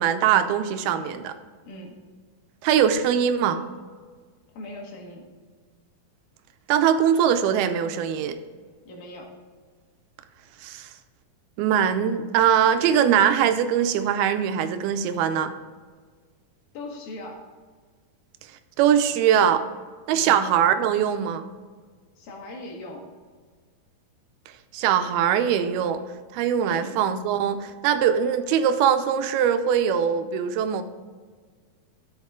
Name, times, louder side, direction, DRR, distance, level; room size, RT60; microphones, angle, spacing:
voice 1, 0.0-1.3 2.6-3.6 6.7-8.4 10.6-10.9 11.6-15.5 18.8-19.6 20.1-21.4 24.7-26.0 26.3-30.8, right 8 dB, 85° right, 9 dB, 2.5 m, -22 dB
voice 2, 1.6-2.0 4.5-5.4 8.8-9.4 16.7-17.4 20.1-20.5 22.2-23.1 26.6-26.9, left 1 dB, 70° left, 0 dB, 3.4 m, -39 dB
11.5 x 7.0 x 3.7 m, 1.5 s
omnidirectional pair, 4.4 m